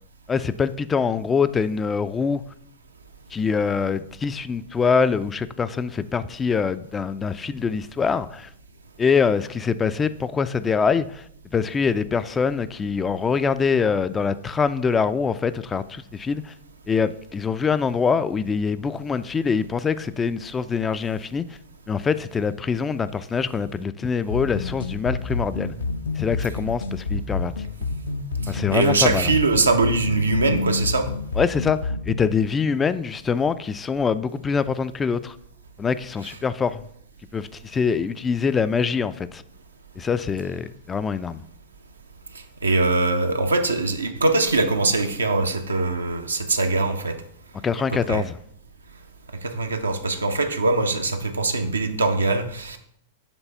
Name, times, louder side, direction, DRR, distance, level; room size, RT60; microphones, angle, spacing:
voice 1, 0.3-2.4 3.3-8.5 9.0-11.2 11.5-16.5 16.9-21.6 21.9-25.7 26.2-27.7 28.5-29.3 31.4-35.4 35.8-36.8 37.3-39.4 40.0-41.4 47.6-48.4, left 5 dB, 20° left, 0.3 m, -24 dB
sound 1, 24.3-32.3, left 3 dB, 75° left, 0.6 m, -29 dB
voice 2, 28.4-31.1 42.6-47.2 48.1-48.2 49.4-52.8, right 3 dB, 85° right, 0.7 m, -22 dB
7.1 x 3.3 x 5.4 m
figure-of-eight pair, 100°, 0 cm